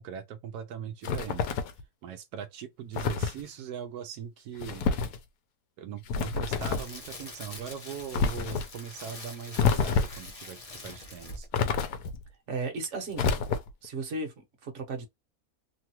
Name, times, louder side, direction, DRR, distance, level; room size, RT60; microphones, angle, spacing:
voice 1, 0.0-1.5 2.0-4.9 5.8-11.5, right 8 dB, 85° right, 1.1 m, -40 dB
sound 1, 1.0-1.8 2.9-3.4 4.6-5.2 6.1-6.9 8.1-8.7 9.6-10.3 11.5-12.2 13.1-13.9, left 5 dB, 85° left, 1.2 m, -28 dB
Crackle, 6.2-11.6 11.9-12.1, left 2 dB, 30° left, 0.7 m, -44 dB
voice 2, 12.5-13.4 13.8-15.1, right 3 dB, 55° right, 1.2 m, -35 dB
3.1 x 2.3 x 2.9 m
omnidirectional pair, 1.6 m